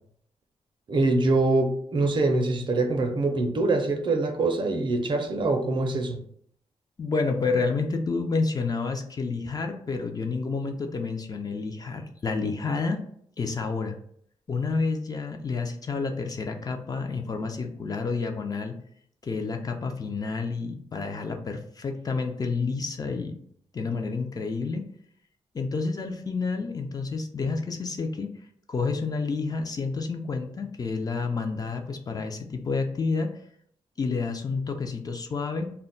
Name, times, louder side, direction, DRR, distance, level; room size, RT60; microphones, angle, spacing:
voice 1, 0.9-6.2, right 2 dB, 45° right, 4 dB, 0.5 m, -24 dB
voice 2, 7.0-13.0 13.4-14.0 14.5-18.8 19.2-23.4 23.7-24.9 25.5-28.3 28.7-33.3 34.0-35.7, left 4 dB, 35° left, 4 dB, 0.3 m, -29 dB
2.2 x 2.1 x 3.8 m, 0.65 s
cardioid pair, 105°, 12 cm